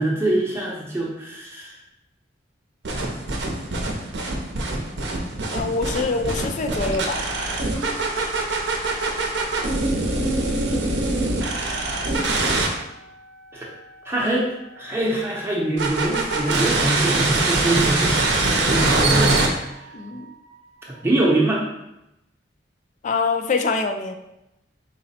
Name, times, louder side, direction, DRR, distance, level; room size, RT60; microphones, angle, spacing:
voice 1, 0.0-1.8 13.5-13.7 14.0-19.4 21.0-21.6, right 1 dB, 15° right, -4 dB, 0.6 m, -23 dB
sound 1, 2.8-12.7 15.8-19.5, right 2 dB, 65° right, 0.6 m, -23 dB
voice 2, 5.5-7.2 19.9-20.3 23.0-24.1, left 4 dB, 40° left, 6 dB, 0.3 m, -24 dB
4.0 x 2.0 x 4.1 m, 0.88 s
head